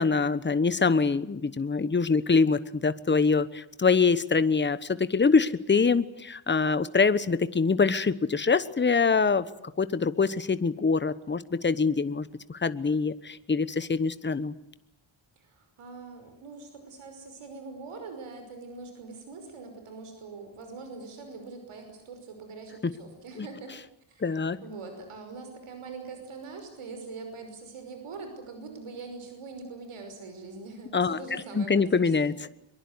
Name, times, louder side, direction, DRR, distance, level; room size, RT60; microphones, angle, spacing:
voice 1, 0.0-9.5 9.8-14.5 23.4-23.5 24.2-24.6 30.9-32.5, left 4 dB, 20° left, 14 dB, 1.1 m, -24 dB
voice 2, 15.4-23.7 24.1-32.1, right 4 dB, 85° right, 6 dB, 5.8 m, -43 dB
24.0 x 22.5 x 9.7 m, 0.77 s
wide cardioid pair, 135°, 49 cm